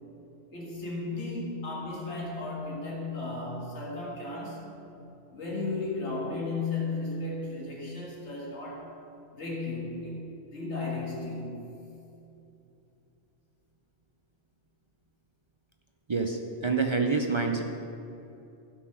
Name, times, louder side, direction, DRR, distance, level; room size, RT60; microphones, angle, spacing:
voice 1, 0.5-4.7 5.3-8.9 9.3-10.2 10.5-11.6, left 3 dB, 65° left, -3 dB, 2.2 m, -34 dB
voice 2, 16.1-17.6, right 4 dB, 40° right, 3 dB, 0.4 m, -27 dB
11.5 x 6.1 x 6.2 m, 2.8 s
omnidirectional pair, 1.2 m